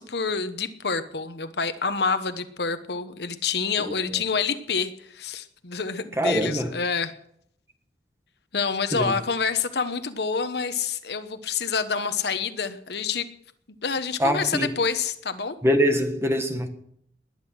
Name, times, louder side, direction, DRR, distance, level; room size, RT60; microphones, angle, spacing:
voice 1, 0.0-7.1 8.5-13.3 13.8-15.5, left 5 dB, 65° left, 1.1 m, -27 dB
voice 2, 3.8-4.2 6.2-6.7 8.9-9.1 14.2-14.7 15.6-16.7, equal, 15° right, 1.5 m, -24 dB
20.5 x 10.0 x 6.3 m
head